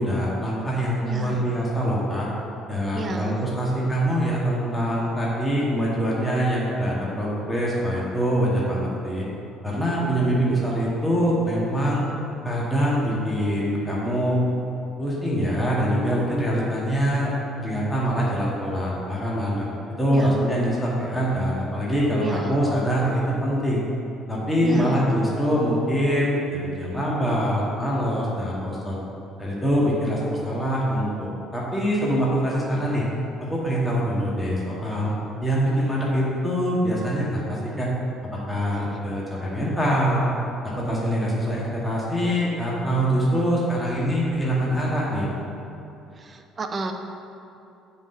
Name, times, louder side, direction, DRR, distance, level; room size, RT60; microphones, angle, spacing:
voice 1, 0.0-2.3 2.7-9.2 9.6-12.0 12.4-14.4 15.0-17.3 17.6-19.7 20.0-23.8 24.3-29.0 29.4-33.0 33.5-35.1 35.4-37.9 38.3-40.3 40.8-45.3, equal, 10° left, -6 dB, 1.9 m, -24 dB
voice 2, 1.0-1.4 2.9-3.4 20.1-20.5 22.2-22.6 24.6-25.0 46.2-46.9, right 3 dB, 35° right, 5 dB, 0.7 m, -32 dB
7.2 x 4.5 x 6.5 m, 2.8 s
figure-of-eight pair, 55°, 0 cm